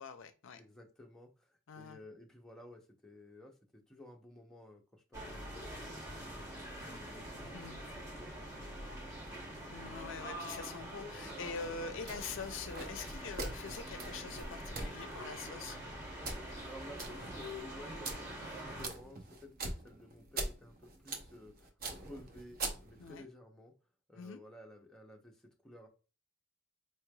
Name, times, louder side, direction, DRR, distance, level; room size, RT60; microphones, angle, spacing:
voice 1, 0.0-0.6 1.7-2.0 7.5-7.8 9.7-15.8 23.0-23.2 24.2-24.4, left 5 dB, 60° left, 9 dB, 0.5 m, -44 dB
voice 2, 0.6-7.3 7.6-9.5 16.6-23.7 24.1-25.9, left 2 dB, 5° left, 0 dB, 0.6 m, -53 dB
sound 1, 5.1-18.9, right 1 dB, 15° right, 1.2 m, -45 dB
sound 2, 12.0-23.2, right 3 dB, 45° right, 0.8 m, -44 dB
4.4 x 3.1 x 2.2 m, 0.33 s
head